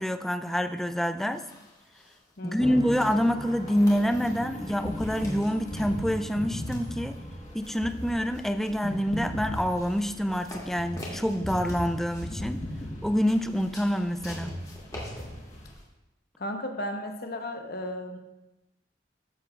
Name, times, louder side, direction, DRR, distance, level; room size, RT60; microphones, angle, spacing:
voice 1, 0.0-1.4 2.4-7.2 7.5-12.6 13.0-14.5, equal, ahead, 9 dB, 0.3 m, -27 dB
sound 1, 1.3-15.9, left 1 dB, 20° left, 2.3 m, -49 dB
voice 2, 2.4-2.8 16.4-18.2, left 1 dB, 55° left, 5 dB, 0.9 m, -34 dB
sound 2, 2.6-11.0, right 1 dB, 35° right, 1.9 m, -43 dB
sound 3, 3.7-15.7, equal, 40° left, 1.3 m, -38 dB
13.0 x 8.0 x 2.4 m, 0.99 s
head